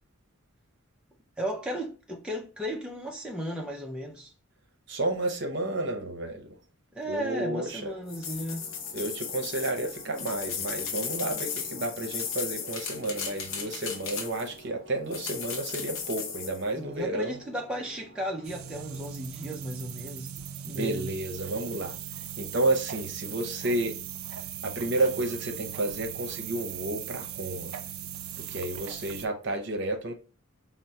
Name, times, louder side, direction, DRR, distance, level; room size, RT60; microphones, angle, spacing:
voice 1, 1.4-4.3 6.9-8.7 16.8-20.3 20.6-21.1, equal, 5° right, 0.4 m, -35 dB
voice 2, 4.9-6.5 7.1-7.9 8.9-17.3 20.7-22.0 22.4-24.0 24.6-27.7 28.4-30.1, right 2 dB, 55° right, 0.7 m, -31 dB
sound 1, 7.2-19.1, right 1 dB, 30° left, 1.1 m, -52 dB
sound 2, 8.1-14.6 15.1-16.6, left 7 dB, 75° left, 0.6 m, -36 dB
sound 3, 18.4-29.3, right 9 dB, 80° right, 0.3 m, -39 dB
4.4 x 2.0 x 2.7 m
head